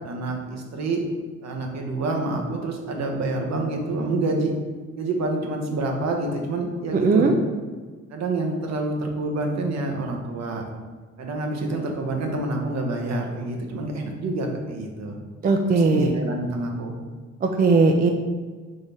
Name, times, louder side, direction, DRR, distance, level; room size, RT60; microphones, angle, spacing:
voice 1, 0.0-1.0 1.4-4.5 5.0-7.2 8.1-10.6 11.2-15.2 15.7-16.9, right 2 dB, 60° right, 2 dB, 0.9 m, -27 dB
voice 2, 6.9-7.3 15.4-16.1 17.4-18.1, right 3 dB, 30° right, 4 dB, 0.4 m, -18 dB
3.9 x 3.9 x 3.4 m, 1.4 s
cardioid pair, 90°, 30 cm